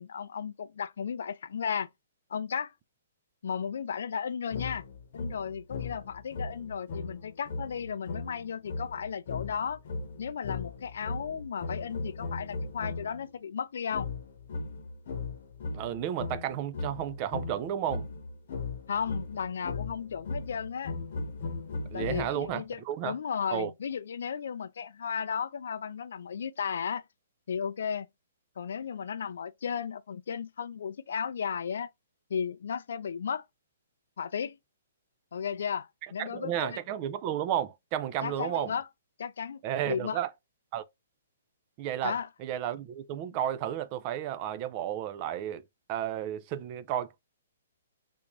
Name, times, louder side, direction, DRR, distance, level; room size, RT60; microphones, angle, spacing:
voice 1, 0.0-1.9 2.3-2.7 3.4-4.8 5.1-9.8 10.2-14.1 18.9-20.9 21.9-27.0 27.5-28.1 28.6-31.9 32.3-33.4 34.2-34.6 35.3-36.8 38.2-38.9 39.2-40.2 42.0-42.3, left 7 dB, 65° left, 0.4 m, -34 dB
sound 1, 4.5-13.3 13.9-22.6, left 3 dB, 45° left, 0.9 m, -38 dB
voice 2, 15.7-18.1 21.9-23.2 23.5-23.7 36.2-38.7 39.6-40.3 40.7-40.8 41.8-45.6 45.9-47.2, right 11 dB, 25° right, 0.3 m, -32 dB
3.5 x 2.5 x 3.0 m
hypercardioid pair, 170°, 0 cm